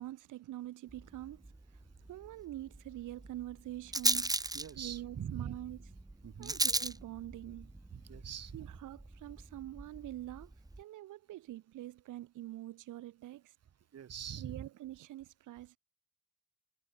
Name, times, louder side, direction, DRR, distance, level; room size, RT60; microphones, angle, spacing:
voice 1, 0.0-1.5 2.1-4.3 4.8-5.8 6.4-7.7 8.5-13.5 14.4-15.8, right 15 dB, 85° right, 6.0 m, -45 dB
Rattle, 0.9-10.8, right 2 dB, 10° right, 3.0 m, -38 dB
voice 2, 4.5-5.6 6.2-6.6 7.9-8.7 13.9-14.7, right 9 dB, 55° right, 4.3 m, -43 dB
cardioid pair, 90°, 30 cm